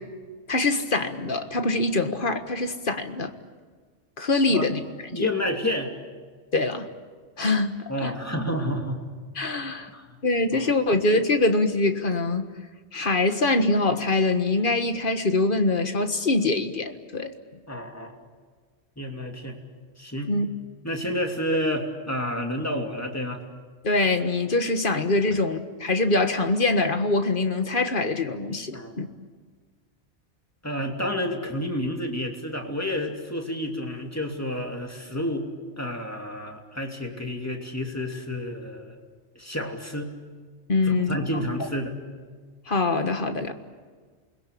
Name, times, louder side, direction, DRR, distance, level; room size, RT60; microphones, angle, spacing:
voice 1, 0.5-3.3 4.2-4.8 5.1-5.3 6.5-6.9 7.4-7.7 8.0-8.1 9.3-9.9 10.2-12.5 12.9-17.3 20.3-20.5 23.8-29.1 40.7-41.2 41.6-41.7 42.7-43.5, left 2 dB, 45° left, 7 dB, 1.7 m, -24 dB
voice 2, 5.1-5.9 7.9-9.0 9.9-10.2 10.5-10.7 17.7-18.1 19.0-19.6 20.0-20.3 20.8-23.4 25.3-25.4 28.7-29.0 30.6-35.5 35.8-39.0 39.4-40.1 40.9-42.0, left 1 dB, 15° left, 2 dB, 2.9 m, -30 dB
28.5 x 21.5 x 8.5 m, 1.5 s
omnidirectional pair, 1.2 m